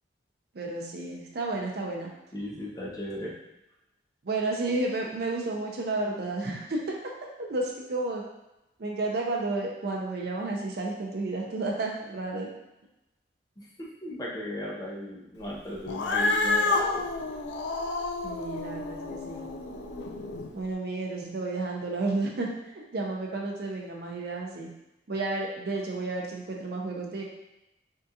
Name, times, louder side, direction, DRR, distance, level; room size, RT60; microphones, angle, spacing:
voice 1, 0.5-2.1 4.2-6.8 7.4-8.2 8.8-12.5 18.2-19.5 20.5-22.5 22.7-24.7 25.1-27.2, right 2 dB, 60° right, -1 dB, 0.5 m, -31 dB
voice 2, 2.3-3.4 13.6-17.1, left 1 dB, 20° left, -4 dB, 0.6 m, -37 dB
Cat, 15.9-20.5, left 3 dB, 75° left, 0.4 m, -29 dB
3.6 x 2.3 x 2.7 m, 0.92 s
head